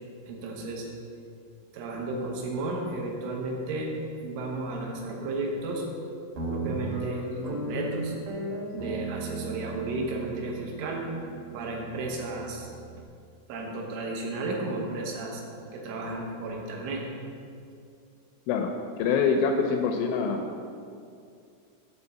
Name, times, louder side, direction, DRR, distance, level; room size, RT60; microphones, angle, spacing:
voice 1, 0.3-0.9 1.7-3.9 4.2-5.9 6.5-8.2 8.7-11.1 11.5-12.7 13.5-15.4 15.7-17.1, right 2 dB, 80° right, 0 dB, 3.4 m, -33 dB
Guitar, 6.4-13.1, right 2 dB, 65° right, 2.2 m, -36 dB
voice 2, 18.5-20.4, left 5 dB, 85° left, 4 dB, 2.7 m, -25 dB
8.8 x 4.1 x 7.2 m, 2.4 s
omnidirectional pair, 5.7 m